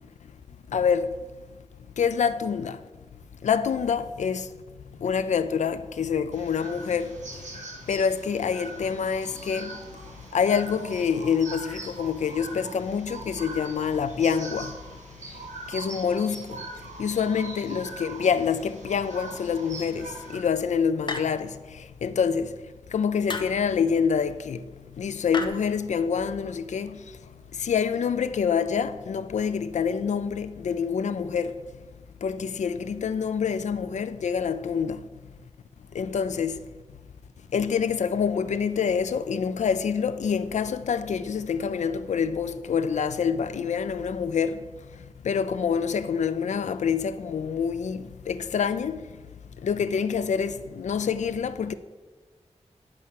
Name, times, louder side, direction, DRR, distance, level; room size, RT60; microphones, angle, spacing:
voice 1, 0.7-1.2 2.0-2.8 3.4-4.5 5.0-7.2 7.9-9.8 10.3-14.8 15.7-16.6 17.0-22.5 22.9-24.7 25.0-27.0 27.5-31.6 32.2-35.1 35.9-36.6 37.5-44.7 45.2-49.1 49.6-51.7, left 6 dB, 80° left, 0.4 m, -26 dB
sound 1, 6.3-20.4, right 2 dB, 85° right, 2.0 m, -42 dB
sound 2, 21.1-21.6 23.3-23.7 25.3-25.5, left 3 dB, 40° left, 0.7 m, -32 dB
9.7 x 4.3 x 7.4 m
wide cardioid pair, 120°, 12 cm